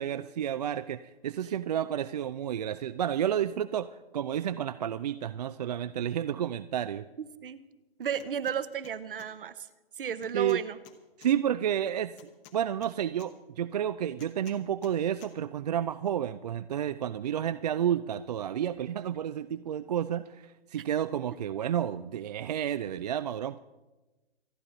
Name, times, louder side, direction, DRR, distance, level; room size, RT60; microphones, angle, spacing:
voice 1, 0.0-7.1 10.3-10.6 11.2-12.2 12.5-23.6, right 10 dB, 45° right, 13 dB, 0.4 m, -31 dB
voice 2, 7.2-7.6 8.0-9.7 10.0-10.8, right 8 dB, 65° right, 13 dB, 1.0 m, -34 dB
sound 1, 8.2-8.6 8.8-9.3 10.2-11.3 12.2-13.3 14.2-14.9 15.2-15.3, left 9 dB, 20° left, 1.0 m, -53 dB
26.5 x 9.5 x 3.9 m, 1.1 s
hypercardioid pair, 140°, 30 cm